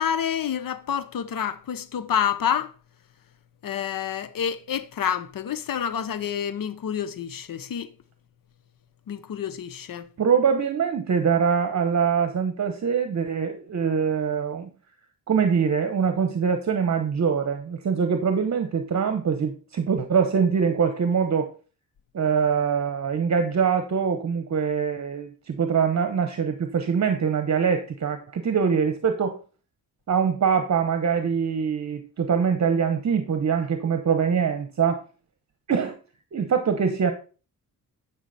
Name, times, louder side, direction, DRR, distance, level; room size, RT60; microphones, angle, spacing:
voice 1, 0.0-2.7 3.6-7.9 9.1-10.1, left 8 dB, 70° left, 0.9 m, -28 dB
voice 2, 10.2-14.7 15.3-21.5 22.1-29.4 30.1-35.0 35.7-36.0 36.3-37.1, right 6 dB, 50° right, 1.1 m, -23 dB
11.5 x 5.8 x 4.2 m
cardioid pair, 105°, 35 cm